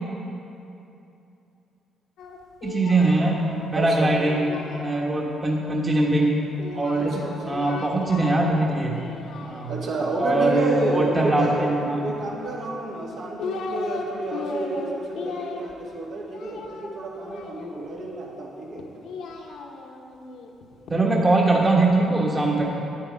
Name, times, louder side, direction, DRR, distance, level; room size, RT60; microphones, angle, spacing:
Singing, 2.2-5.4 6.6-8.6 8.9-10.1 11.5-12.5 13.1-14.1 14.3-18.0 18.8-21.0, left 4 dB, 80° left, 1.0 m, -37 dB
voice 1, 2.6-3.4 3.7-4.4 4.8-6.4 6.7-7.1 7.5-9.0 9.4-9.7 10.2-12.0 20.9-22.7, right 2 dB, 25° right, -2 dB, 1.2 m, -21 dB
voice 2, 3.7-4.2 7.1-7.4 9.7-11.7 12.0-18.9, right 2 dB, 75° right, -3 dB, 2.1 m, -30 dB
9.0 x 8.8 x 5.1 m, 2.7 s
cardioid pair, 90°, 0 cm